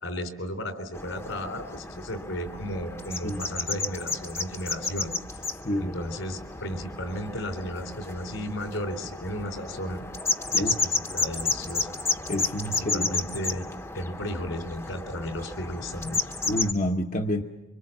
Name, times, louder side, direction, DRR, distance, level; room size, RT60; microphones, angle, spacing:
voice 1, 0.0-5.4 5.7-10.0 10.6-12.0 12.6-13.7 13.9-16.3, equal, 80° left, 6 dB, 3.9 m, -34 dB
sound 1, 0.9-16.7, left 3 dB, 15° left, 0.9 m, -32 dB
voice 2, 5.6-6.0 10.5-10.9 12.3-13.3 16.5-17.4, equal, 40° left, 3 dB, 0.9 m, -29 dB
26.0 x 25.0 x 7.3 m, 1.0 s
head